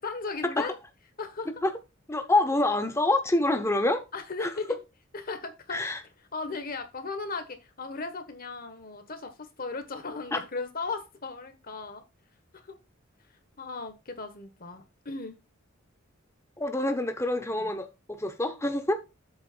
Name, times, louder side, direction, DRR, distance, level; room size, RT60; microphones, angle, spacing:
voice 1, 0.0-0.8 1.2-1.5 4.1-4.8 5.1-5.8 6.3-12.0 12.5-12.8 13.6-15.4 17.5-17.7, left 4 dB, 45° left, 1.4 m, -37 dB
voice 2, 2.1-4.0 4.4-4.5 5.7-6.0 10.3-10.4 16.6-19.0, left 2 dB, 15° left, 1.0 m, -26 dB
8.0 x 3.2 x 6.2 m
head